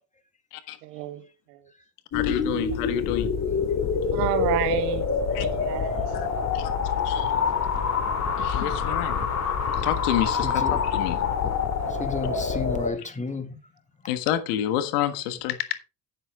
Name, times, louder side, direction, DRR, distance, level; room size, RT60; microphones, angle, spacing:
voice 1, 0.8-1.2 1.5-1.7 4.1-6.1, right 13 dB, 80° right, 1.6 m, -30 dB
voice 2, 2.1-3.3 5.3-5.4 6.5-6.7 7.0-7.3 8.4-9.2 9.8-10.5 10.9-11.2 14.1-15.6, left 11 dB, 75° left, 1.6 m, -28 dB
sound 1, 2.1-12.9, left 6 dB, 35° left, 2.4 m, -26 dB
voice 3, 10.3-10.8 11.9-13.7, left 3 dB, 15° left, 2.2 m, -33 dB
9.3 x 8.1 x 3.6 m
hypercardioid pair, 80°, 46 cm